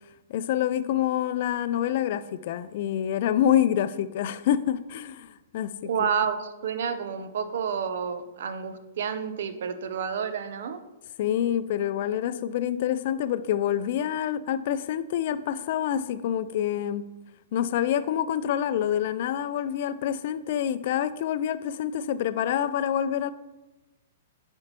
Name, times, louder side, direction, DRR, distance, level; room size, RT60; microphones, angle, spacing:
voice 1, 0.3-5.3 5.5-5.9 11.2-17.1 17.5-23.3, left 10 dB, 55° left, 0.4 m, -27 dB
voice 2, 5.8-10.8, right 7 dB, 65° right, 0.6 m, -30 dB
10.5 x 4.4 x 2.9 m
figure-of-eight pair, 110°, 0 cm